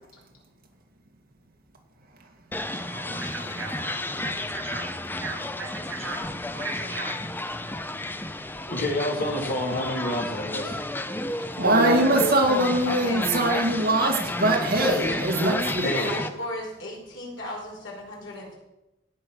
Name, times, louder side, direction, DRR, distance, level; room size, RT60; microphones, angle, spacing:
sound 1, 2.5-16.3, left 1 dB, 10° left, 0.6 m, -32 dB
voice 1, 2.7-4.0 4.2-4.9 5.2-7.2 11.6-12.3, right 2 dB, 85° right, 2 dB, 3.4 m, -32 dB
voice 2, 8.7-10.8 15.7-16.1, left 1 dB, 50° left, 0 dB, 3.1 m, -28 dB
voice 3, 11.6-15.9, right 1 dB, 50° right, 1 dB, 2.4 m, -22 dB
voice 4, 12.8-13.4 14.8-15.2 15.8-18.6, left 1 dB, 70° left, -2 dB, 5.0 m, -35 dB
18.0 x 6.5 x 6.4 m, 0.94 s
head